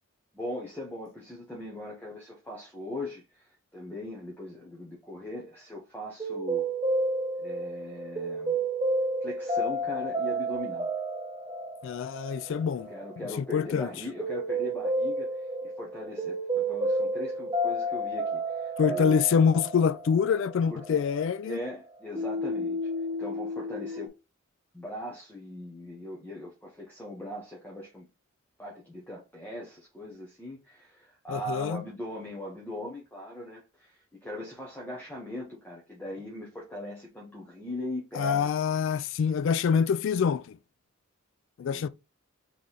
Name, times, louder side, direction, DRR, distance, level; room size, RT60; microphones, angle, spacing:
voice 1, 0.3-6.7 7.4-8.6 9.2-10.9 12.9-15.5 15.8-19.2 20.7-21.0 21.4-22.9 23.2-24.1 24.7-28.0 28.6-38.5 41.6-41.9, left 1 dB, 10° left, 1.0 m, -40 dB
sound 1, 6.2-21.8 22.2-24.1, right 1 dB, 20° right, 0.5 m, -31 dB
voice 2, 11.8-12.9 13.4-13.9 18.8-21.6 31.3-31.8 38.1-40.6 41.6-41.9, left 6 dB, 65° left, 0.3 m, -25 dB
3.8 x 3.1 x 4.0 m
head